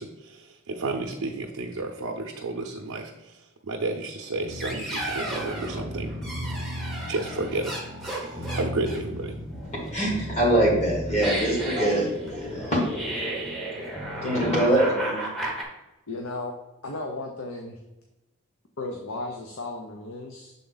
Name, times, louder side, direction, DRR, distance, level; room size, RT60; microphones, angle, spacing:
voice 1, 0.0-6.1 7.1-7.7 8.1-9.4, right 2 dB, 80° right, 1 dB, 0.6 m, -32 dB
sound 1, 4.4-15.6, right 1 dB, ahead, 0.8 m, -33 dB
voice 2, 9.9-12.8 14.2-15.2, right 1 dB, 30° left, -2 dB, 1.7 m, -23 dB
voice 3, 14.2-14.7 16.1-16.6 16.8-17.8 18.8-20.5, left 2 dB, 80° left, 2 dB, 0.7 m, -35 dB
6.9 x 3.8 x 3.9 m, 0.99 s
head